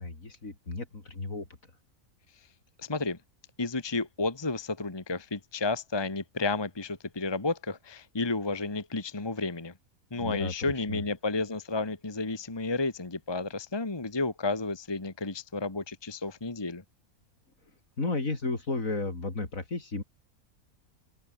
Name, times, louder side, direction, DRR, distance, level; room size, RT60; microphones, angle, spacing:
voice 1, 0.0-1.5 10.2-11.0 18.0-20.0, left 3 dB, 65° left, 4.3 m, -33 dB
voice 2, 2.8-3.2 3.6-9.7 10.1-16.8, left 3 dB, 20° left, 1.4 m, -32 dB
open air
omnidirectional pair, 1.5 m